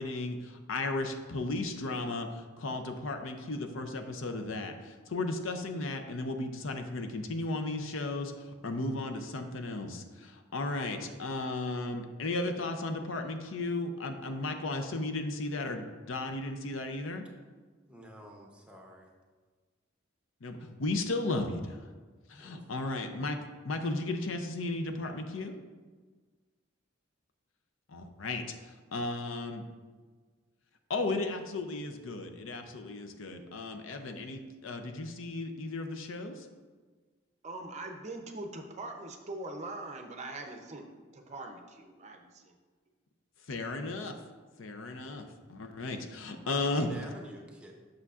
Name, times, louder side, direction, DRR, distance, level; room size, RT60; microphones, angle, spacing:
voice 1, 0.0-17.2 20.4-21.8 22.3-23.4 23.6-25.5 27.9-29.6 30.9-36.5 43.5-44.2 44.6-46.9, left 2 dB, 70° left, 6 dB, 0.6 m, -35 dB
voice 2, 17.9-19.1 22.4-22.8 46.4-47.7, equal, 5° right, 0 dB, 0.8 m, -49 dB
voice 3, 37.4-40.8 41.1-42.5, right 2 dB, 35° right, 4 dB, 0.6 m, -42 dB
8.2 x 6.4 x 2.4 m, 1.4 s
head